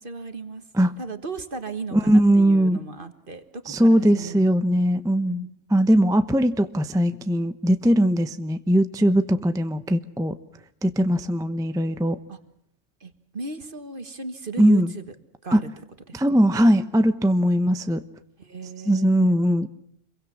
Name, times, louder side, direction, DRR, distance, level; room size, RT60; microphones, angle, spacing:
voice 1, 0.0-0.7 1.0-4.4 4.7-4.8 5.3-5.5 12.3-12.4 13.0-15.1 15.4-15.7 16.1-16.2 18.4-19.4, right 4 dB, 45° right, 9 dB, 1.7 m, -36 dB
voice 2, 1.9-2.8 3.7-10.3 10.8-12.2 14.6-14.9 15.5-15.6 16.1-18.0 18.9-19.7, equal, 5° right, 10 dB, 0.8 m, -20 dB
27.0 x 23.0 x 7.2 m, 0.71 s
omnidirectional pair, 1.3 m